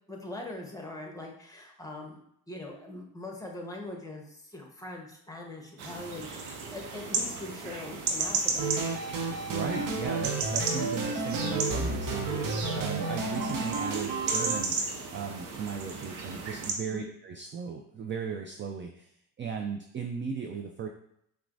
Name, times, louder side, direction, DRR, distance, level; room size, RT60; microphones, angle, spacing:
voice 1, 0.1-2.2 2.5-8.7 16.9-17.1, left 2 dB, 10° left, 1 dB, 1.1 m, -42 dB
sound 1, 5.8-16.7, right 4 dB, 90° right, 0.7 m, -35 dB
sound 2, 8.6-14.6, right 3 dB, 45° right, 0.9 m, -31 dB
voice 2, 9.2-19.1 19.4-20.9, right 6 dB, 30° right, 3 dB, 0.4 m, -37 dB
5.6 x 2.3 x 2.6 m, 0.72 s
hypercardioid pair, 65°, 44 cm